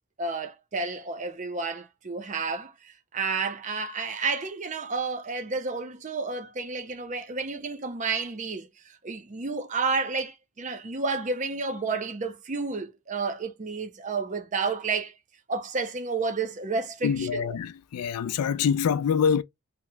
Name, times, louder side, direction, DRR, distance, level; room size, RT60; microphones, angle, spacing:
voice 1, 0.2-15.1 15.5-17.5, right 4 dB, 35° right, 0.5 m, -31 dB
voice 2, 17.0-19.4, left 7 dB, 85° left, 0.3 m, -25 dB
2.8 x 2.1 x 3.3 m
head